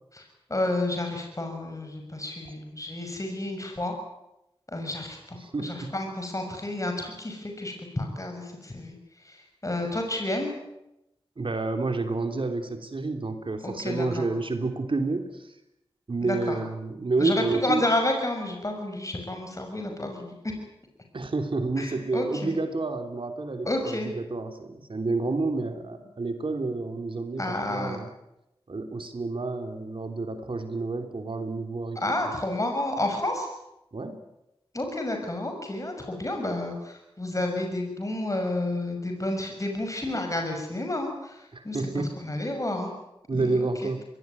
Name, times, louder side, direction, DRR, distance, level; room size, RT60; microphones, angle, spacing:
voice 1, 0.5-3.9 4.7-8.9 9.3-9.4 9.6-10.5 13.6-14.2 16.2-16.6 17.2-20.3 21.8-22.5 23.7-24.1 27.4-28.0 32.0-33.5 34.7-42.9 43.3-43.7, left 1 dB, 30° left, 3 dB, 6.5 m, -30 dB
voice 2, 5.4-5.9 11.4-15.5 16.1-17.8 21.1-28.1 28.7-32.3 33.9-34.1 41.5-42.2 43.3-44.0, right 3 dB, 60° right, 6 dB, 3.2 m, -29 dB
22.5 x 19.0 x 9.7 m, 0.89 s
cardioid pair, 40°, 10 cm